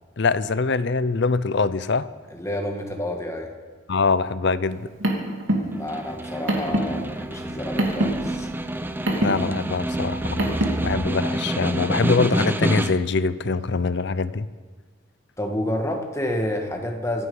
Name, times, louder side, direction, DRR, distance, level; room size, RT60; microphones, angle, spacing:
voice 1, 0.2-2.1 3.9-4.9 9.2-10.6 10.8-14.5, left 4 dB, 55° left, 15 dB, 0.6 m, -23 dB
voice 2, 2.3-3.5 5.8-8.5 15.4-17.3, left 1 dB, 15° left, 3 dB, 1.7 m, -29 dB
Car, 4.7-10.9, right 1 dB, 70° right, 2.9 m, -27 dB
Snare drum, 5.7-13.2, right 1 dB, 10° right, 0.6 m, -28 dB
25.0 x 9.8 x 5.5 m, 1.4 s
head